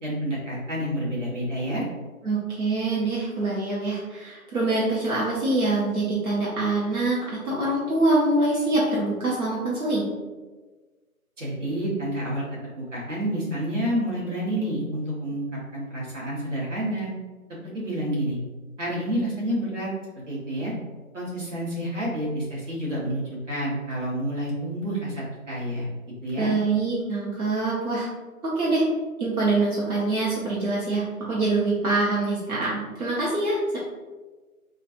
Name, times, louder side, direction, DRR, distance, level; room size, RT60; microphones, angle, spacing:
voice 1, 0.0-1.8 11.4-12.4 12.8-15.4 15.7-17.1 17.7-18.4 18.8-19.9 20.3-20.7 21.1-25.9 26.2-26.5, right 1 dB, 55° right, -6 dB, 1.3 m, -29 dB
voice 2, 2.2-7.2 7.4-10.1 26.4-28.1 28.4-28.8 29.2-33.8, right 2 dB, 75° right, -7 dB, 1.0 m, -24 dB
3.0 x 2.4 x 2.6 m, 1.3 s
figure-of-eight pair, 180°, 44 cm